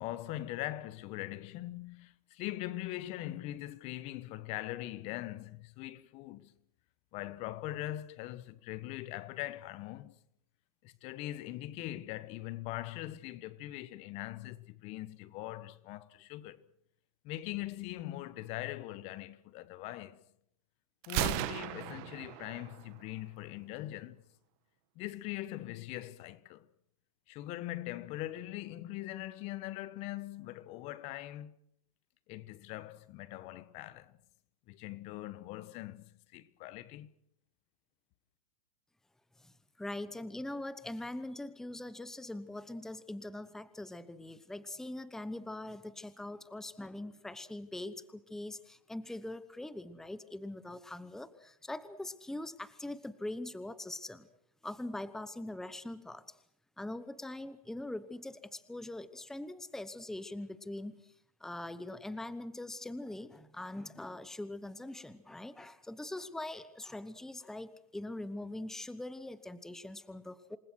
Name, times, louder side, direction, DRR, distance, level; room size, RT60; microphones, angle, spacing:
voice 1, 0.0-6.5 7.1-10.1 10.8-16.6 17.2-20.2 21.1-24.2 25.0-26.7 27.3-31.5 32.3-34.2 34.7-37.1, left 15 dB, 35° left, 1.1 m, -41 dB
Gunshot gunfire, 21.0-23.0, right 15 dB, 45° right, 1.5 m, -36 dB
voice 2, 39.4-54.3 54.6-56.3 56.8-61.1 61.4-70.6, left 1 dB, ahead, 1.0 m, -42 dB
27.5 x 20.5 x 6.2 m
hypercardioid pair, 135°, 19 cm